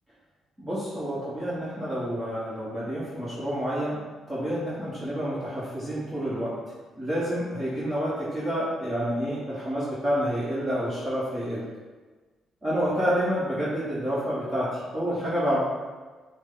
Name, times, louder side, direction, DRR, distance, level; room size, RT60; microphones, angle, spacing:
voice 1, 0.6-4.0 4.3-6.5 7.0-11.6 12.6-15.6, equal, 15° right, -10 dB, 1.3 m, -28 dB
6.1 x 2.2 x 3.8 m, 1.3 s
cardioid pair, 90°, 0 cm